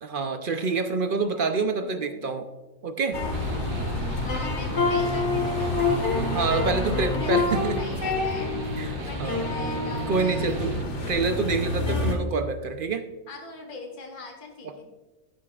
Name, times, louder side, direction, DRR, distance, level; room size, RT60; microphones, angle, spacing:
voice 1, 0.0-2.5 2.8-3.2 6.3-7.8 8.8-9.5 10.1-10.8 11.1-13.1, right 4 dB, 60° right, 8 dB, 0.6 m, -27 dB
voice 2, 1.3-2.2 3.4-3.9 4.2-6.8 7.1-8.5 9.1-10.8 13.3-14.9, left 3 dB, 85° left, 2 dB, 1.8 m, -41 dB
sound 1, 3.1-12.2, left 3 dB, 50° left, 1.8 m, -27 dB
sound 2, 3.3-10.8, right 2 dB, 75° right, 1.3 m, -36 dB
12.5 x 10.0 x 2.4 m, 1.2 s
omnidirectional pair, 1.6 m